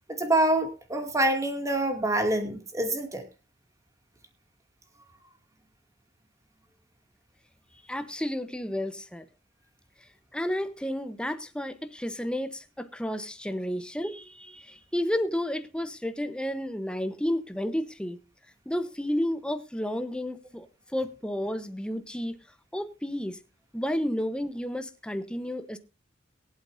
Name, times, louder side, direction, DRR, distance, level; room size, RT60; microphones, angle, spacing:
voice 1, 0.1-3.3, right 1 dB, 15° right, 2.4 m, -26 dB
voice 2, 7.9-9.2 10.3-18.2 18.7-20.7 20.9-22.4 22.7-23.4 23.7-25.8, left 1 dB, 5° left, 1.0 m, -31 dB
22.5 x 8.2 x 2.6 m
head